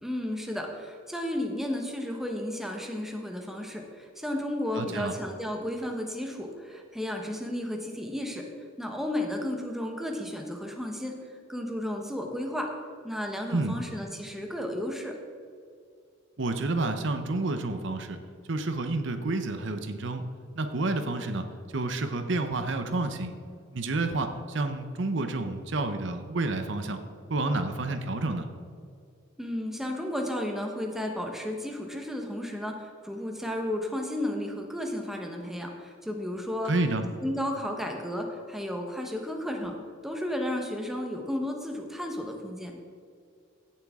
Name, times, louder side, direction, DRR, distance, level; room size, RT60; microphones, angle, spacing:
voice 1, 0.0-8.4 8.8-11.2 11.5-12.7 13.0-15.1 29.4-36.7 37.2-39.8 40.0-42.8, left 1 dB, ahead, 2 dB, 1.0 m, -33 dB
voice 2, 4.8-5.1 13.5-13.8 16.4-18.2 18.5-20.2 20.6-21.5 21.7-23.3 23.7-27.0 27.3-28.5 36.7-37.0, right 2 dB, 60° right, 7 dB, 0.7 m, -29 dB
16.5 x 7.3 x 3.7 m, 2.3 s
head